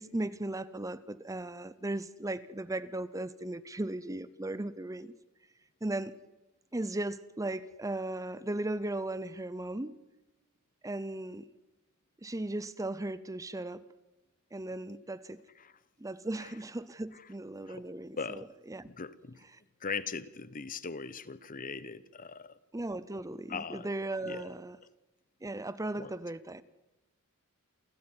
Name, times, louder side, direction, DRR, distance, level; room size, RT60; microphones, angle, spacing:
voice 1, 0.0-5.2 5.8-6.2 6.7-9.9 10.8-11.5 12.2-13.8 14.5-15.4 16.0-18.9 19.5-19.6 22.7-24.8 25.4-26.6, right 2 dB, 15° right, 0.7 m, -37 dB
voice 2, 18.9-19.4 19.8-22.5 23.5-23.9 24.3-24.5 26.0-26.1, left 5 dB, 40° left, 1.0 m, -39 dB
28.5 x 15.0 x 9.7 m
head